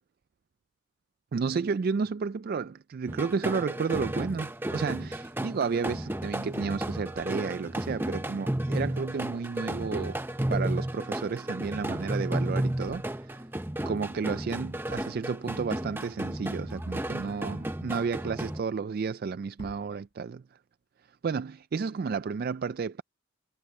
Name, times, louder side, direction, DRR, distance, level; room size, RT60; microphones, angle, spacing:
voice 1, 1.3-10.2 10.5-13.4 13.9-20.4 21.2-23.0, right 5 dB, 45° right, 0.3 m, -32 dB
sound 1, 3.1-18.6, right 1 dB, 10° right, 0.7 m, -33 dB
sound 2, 12.7-13.4 13.8-13.9 14.3-14.4 14.9-15.5 19.6-20.2 21.4-21.6, equal, 20° left, 1.7 m, -52 dB
head